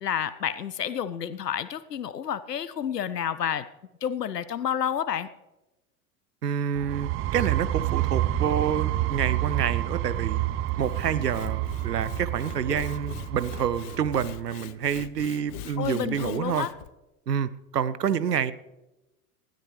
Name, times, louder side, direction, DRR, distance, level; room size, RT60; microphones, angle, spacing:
voice 1, 0.0-3.7 4.0-5.3 15.8-16.7, left 9 dB, 85° left, 15 dB, 0.6 m, -30 dB
voice 2, 6.4-10.4 10.8-16.7 17.3-18.5, right 8 dB, 85° right, 17 dB, 0.8 m, -28 dB
sound 1, 6.8-14.4, right 14 dB, 30° right, 0.6 m, -29 dB
Sawing / Wood, 10.7-16.9, left 15 dB, 45° left, 0.6 m, -43 dB
19.5 x 13.0 x 3.2 m, 1.0 s
figure-of-eight pair, 80°, 47 cm